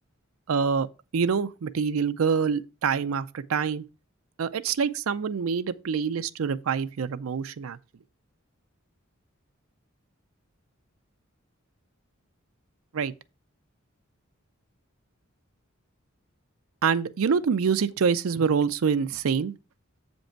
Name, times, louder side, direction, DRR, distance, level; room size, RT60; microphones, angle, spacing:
voice 1, 0.5-0.9 1.1-3.8 4.4-7.8 12.9-13.1 16.8-19.5, right 6 dB, 80° right, 0.5 m, -26 dB
7.4 x 5.3 x 4.5 m
head